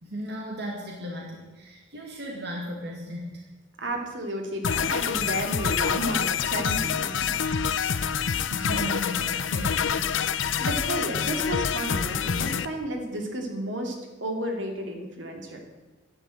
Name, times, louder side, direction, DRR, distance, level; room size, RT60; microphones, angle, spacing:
voice 1, 0.0-3.5 8.5-10.0, equal, 60° right, -1 dB, 2.2 m, -36 dB
voice 2, 3.8-7.3 7.7-8.0 10.6-15.6, right 1 dB, 75° right, 3 dB, 2.7 m, -32 dB
sound 1, 4.6-12.7, left 7 dB, 90° left, 0.6 m, -26 dB
12.0 x 11.0 x 7.7 m, 1.2 s
head